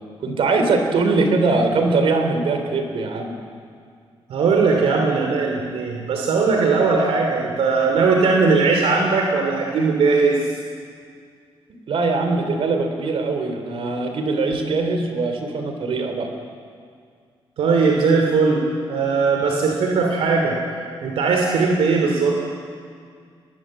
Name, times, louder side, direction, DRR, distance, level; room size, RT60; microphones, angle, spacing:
voice 1, 0.2-3.4 11.9-16.3, right 3 dB, 70° right, 5 dB, 3.6 m, -21 dB
voice 2, 4.3-10.5 17.6-20.6 21.0-22.4, right 4 dB, 85° right, 1 dB, 3.0 m, -19 dB
23.5 x 20.5 x 7.7 m, 2.1 s
cardioid pair, 100°, 10 cm